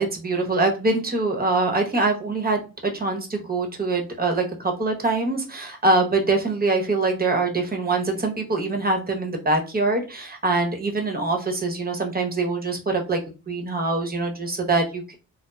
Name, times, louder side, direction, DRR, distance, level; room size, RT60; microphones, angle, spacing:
voice 1, 0.0-13.2 13.5-15.1, right 3 dB, 25° right, 3 dB, 0.9 m, -24 dB
2.9 x 2.0 x 2.2 m, 0.32 s
supercardioid pair, 50°, 34 cm